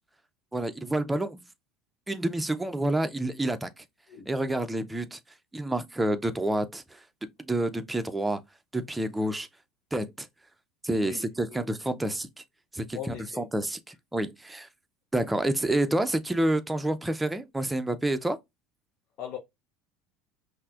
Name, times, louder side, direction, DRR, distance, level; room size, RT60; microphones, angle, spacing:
voice 1, 0.5-1.4 2.1-3.8 4.3-5.2 5.5-8.4 8.7-9.5 9.9-10.3 10.8-12.3 12.7-14.7 15.1-18.4, right 1 dB, 10° right, 0.5 m, -29 dB
voice 2, 10.9-11.6 12.9-13.7 19.2-19.4, left 9 dB, 55° left, 0.7 m, -40 dB
5.5 x 2.1 x 2.4 m
hypercardioid pair, 80°, 0 cm